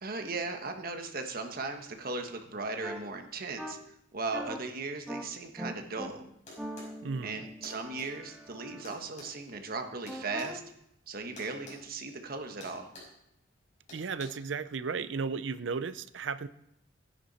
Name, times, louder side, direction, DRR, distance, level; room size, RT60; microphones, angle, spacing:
voice 1, 0.0-3.8 4.1-6.2 7.2-10.6 11.1-12.9, right 3 dB, 50° right, 5 dB, 1.4 m, -37 dB
sound 1, 2.8-3.0 3.6-3.7 4.3-4.6 5.1-5.2 5.6-6.1 6.6-8.8 10.1-10.6, equal, 5° right, 1.4 m, -41 dB
sound 2, 6.5-6.9 7.6-8.1 8.8-10.5 11.4-11.8 12.1-12.3 12.6-13.2 13.9-14.3, left 2 dB, 40° left, 6.0 m, -49 dB
voice 2, 7.0-7.4 13.9-16.5, right 5 dB, 70° right, 14 dB, 0.5 m, -34 dB
16.0 x 10.0 x 4.2 m, 0.76 s
head